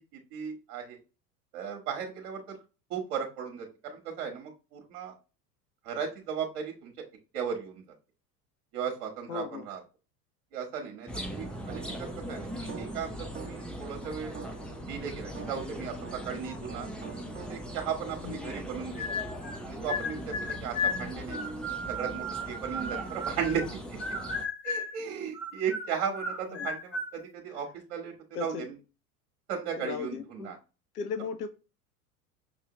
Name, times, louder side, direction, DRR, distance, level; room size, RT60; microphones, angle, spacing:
voice 1, 0.1-1.0 1.5-2.6 2.9-5.1 5.8-7.0 7.3-7.8 8.7-9.8 10.5-14.3 14.9-16.9 17.5-19.2 19.6-21.4 21.9-24.2 24.6-28.1 28.4-28.8 29.5-30.6, right 7 dB, 50° right, 1.2 m, -36 dB
voice 2, 9.3-9.7 18.2-18.5 26.5-26.7 28.3-28.7 29.8-30.5 30.9-31.5, left 6 dB, 75° left, 0.7 m, -36 dB
sound 1, 11.1-24.4, equal, ahead, 0.4 m, -40 dB
sound 2, 11.7-13.8 14.3-16.4 16.7-17.9, right 6 dB, 20° right, 0.8 m, -47 dB
sound 3, 19.0-19.6 19.9-23.7 24.0-25.0 25.3-27.1, left 2 dB, 25° left, 1.6 m, -34 dB
5.8 x 2.7 x 2.9 m
figure-of-eight pair, 80°, 47 cm